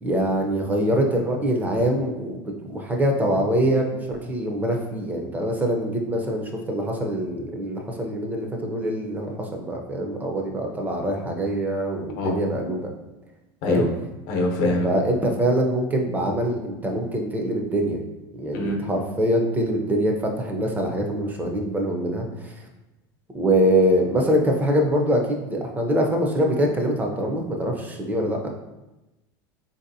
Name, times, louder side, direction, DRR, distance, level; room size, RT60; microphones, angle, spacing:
voice 1, 0.0-12.8 13.7-13.9 14.8-18.0 18.4-22.5 23.3-28.5, right 1 dB, 15° right, 2 dB, 0.5 m, -24 dB
voice 2, 12.1-12.5 13.6-13.9 14.3-14.9 18.5-18.8, left 2 dB, 65° left, 1 dB, 0.8 m, -23 dB
3.9 x 2.7 x 2.6 m, 1.0 s
supercardioid pair, 125°, 12 cm